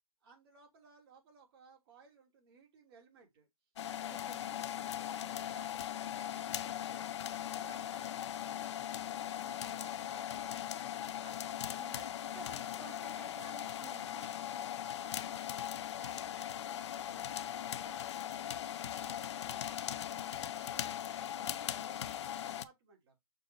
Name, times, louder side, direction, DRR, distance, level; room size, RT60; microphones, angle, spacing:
voice 1, 0.2-3.5 4.1-7.1 7.6-10.5 11.2-12.4 12.7-12.9 14.1-18.5 19.0-23.2, right 5 dB, 40° right, 3.1 m, -61 dB
sound 1, 3.8-22.6, left 10 dB, 50° left, 0.6 m, -39 dB
voice 2, 4.1-4.4 11.8-12.0 12.3-14.2, right 5 dB, 15° right, 1.1 m, -54 dB
6.6 x 3.8 x 4.3 m
figure-of-eight pair, 130°, 19 cm